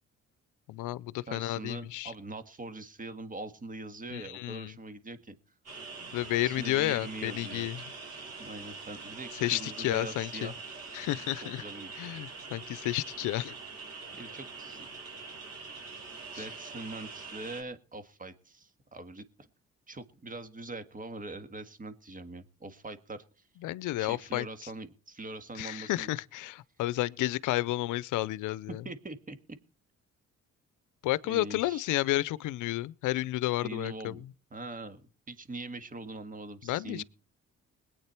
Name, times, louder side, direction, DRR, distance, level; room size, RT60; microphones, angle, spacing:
voice 1, 0.7-2.1 4.1-4.7 6.1-7.8 9.4-10.5 10.9-11.6 12.0-13.5 16.3-16.4 23.6-24.5 25.6-28.8 31.0-34.2 36.6-37.0, left 17 dB, 85° left, 0.6 m, -31 dB
voice 2, 1.3-5.3 6.4-7.7 8.4-10.6 11.0-11.1 11.4-11.9 14.1-14.9 16.3-19.5 19.9-23.5 24.0-26.1 28.9-29.4 31.3-31.9 33.6-34.2 34.5-37.0, right 2 dB, 25° right, 1.7 m, -43 dB
sound 1, 5.7-17.6, right 4 dB, 55° right, 5.2 m, -44 dB
21.0 x 8.9 x 4.4 m
cardioid pair, 90°, 30 cm